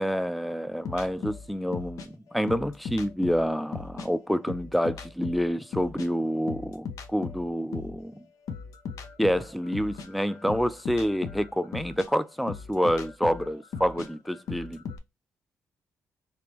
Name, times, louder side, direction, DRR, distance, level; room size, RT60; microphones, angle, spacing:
voice 1, 0.0-6.9 7.1-8.1 9.2-14.8, equal, ahead, 0.4 m, -28 dB
sound 1, 0.8-4.1 4.4-8.0 8.5-15.0, left 5 dB, 70° left, 0.6 m, -38 dB
3.4 x 3.0 x 2.9 m
cardioid pair, 85°, 6 cm